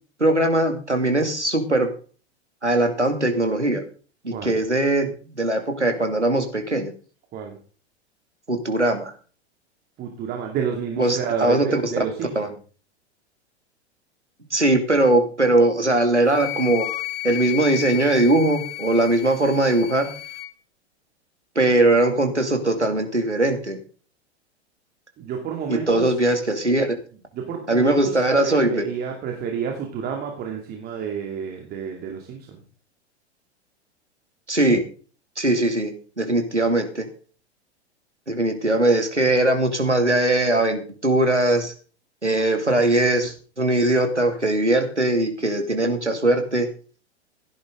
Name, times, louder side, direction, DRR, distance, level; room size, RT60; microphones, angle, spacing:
voice 1, 0.2-1.9 2.6-3.8 4.2-6.9 8.5-9.1 11.0-11.8 12.4-12.5 14.5-16.9 17.2-20.1 21.6-23.8 25.9-26.9 27.7-28.8 34.5-34.9 35.4-35.9 36.2-37.0 38.3-41.7 42.2-46.7, right 1 dB, 90° right, 5 dB, 2.6 m, -20 dB
voice 2, 10.0-12.6 25.2-26.1 27.3-32.6, right 7 dB, 30° right, 2 dB, 2.5 m, -30 dB
Wind instrument woodwind instrument, 16.3-20.5, left 17 dB, 30° left, 1.8 m, -32 dB
16.0 x 11.0 x 3.7 m, 0.39 s
figure-of-eight pair, 95°, 34 cm